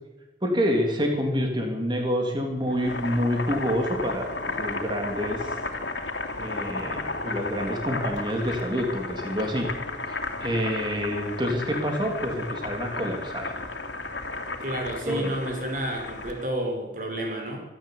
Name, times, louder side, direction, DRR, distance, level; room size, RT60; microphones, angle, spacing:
voice 1, 0.4-4.3 4.6-5.6 6.4-9.7 10.4-13.5 15.0-15.3, equal, 25° right, 2 dB, 3.4 m, -27 dB
Boiling, 2.6-16.5, left 3 dB, 85° left, 2.8 m, -34 dB
voice 2, 14.6-17.6, right 1 dB, 50° right, 2 dB, 5.6 m, -30 dB
25.5 x 12.0 x 8.8 m, 1.1 s
head